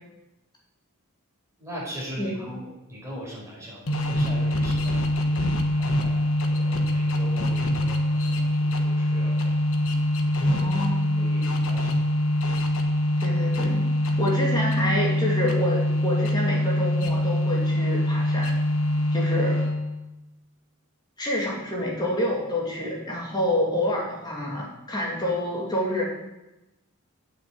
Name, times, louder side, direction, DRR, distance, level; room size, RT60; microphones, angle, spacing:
voice 1, 1.6-9.6 10.4-10.6 11.0-12.2, equal, 15° right, -6 dB, 5.2 m, -41 dB
sound 1, 3.9-20.0, left 1 dB, 65° left, 1.4 m, -24 dB
voice 2, 10.4-11.0 13.2-13.9 14.2-18.5 19.1-19.6 21.2-26.0, left 1 dB, 20° left, -3 dB, 2.9 m, -27 dB
9.2 x 7.1 x 7.9 m, 0.96 s
head